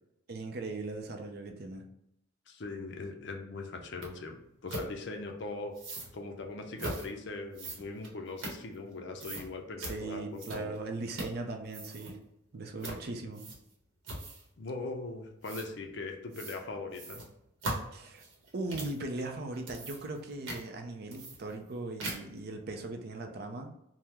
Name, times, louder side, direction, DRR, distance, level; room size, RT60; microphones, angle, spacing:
voice 1, 0.3-1.8 9.8-12.2 12.5-13.4 17.9-18.2 18.5-23.7, right 2 dB, 50° right, 4 dB, 0.4 m, -39 dB
voice 2, 2.5-5.7 6.1-10.7 12.8-13.0 14.6-17.2, left 3 dB, 55° left, 3 dB, 0.5 m, -40 dB
sound 1, 4.0-4.1 4.7-4.9 5.7-6.1 6.8-7.1 7.5-8.9 9.2-9.5 9.8-10.0 10.4-10.8 11.1-11.4 11.7-12.1 12.8-13.0 13.3-13.7 14.0-14.5 15.4-15.7 16.3-16.6 16.9-19.0 19.5-20.2 20.5-20.6 21.1-21.7 22.0-22.4, right 2 dB, 70° right, 0.9 m, -40 dB
3.5 x 2.1 x 2.9 m, 0.81 s
head